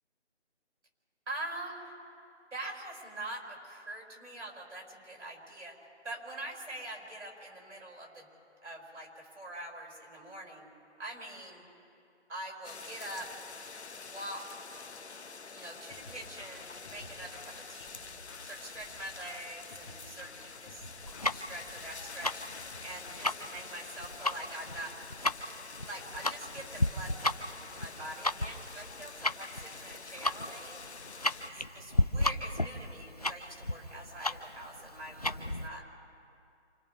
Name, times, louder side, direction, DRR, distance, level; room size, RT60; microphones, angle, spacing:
voice 1, 1.3-1.9 2.5-5.8 6.0-8.3 8.6-10.7 11.0-11.6 12.3-13.3 13.9-14.6 15.5-18.2 18.4-20.9 21.3-22.4 22.8-25.0 25.7-30.8 31.4-35.9, right 1 dB, 85° right, -1 dB, 6.6 m, -44 dB
sound 1, 12.6-31.5, left 5 dB, 70° left, 1.1 m, -47 dB
sound 2, 15.9-23.5, left 2 dB, 15° left, 2.0 m, -53 dB
Tick-tock, 21.1-35.7, left 1 dB, 35° left, 0.5 m, -34 dB
28.5 x 28.0 x 3.6 m, 2.5 s
figure-of-eight pair, 170°, 35 cm